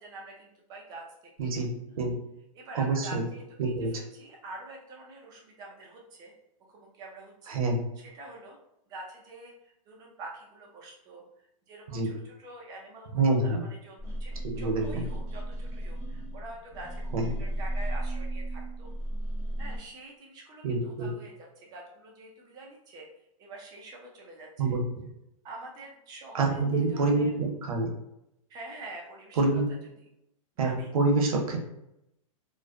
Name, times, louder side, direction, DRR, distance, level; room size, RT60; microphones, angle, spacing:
voice 1, 0.0-1.5 1.9-2.1 2.5-6.3 6.7-7.6 8.0-8.6 8.9-18.9 19.6-23.1 23.4-24.8 25.4-27.3 28.5-29.4 30.6-30.9, right 2 dB, 20° right, -1 dB, 0.4 m, -46 dB
voice 2, 1.4-2.1 2.7-3.2 3.6-3.9 7.5-7.8 11.9-12.1 13.1-13.6 14.5-15.0 17.1-17.3 20.6-21.1 24.6-24.8 26.3-27.9 29.4-29.6 30.6-31.6, right 3 dB, 85° right, 1 dB, 0.7 m, -26 dB
sound 1, 14.0-19.8, right 1 dB, 5° right, 1.0 m, -34 dB
2.6 x 2.1 x 2.3 m, 0.84 s
hypercardioid pair, 150°, 18 cm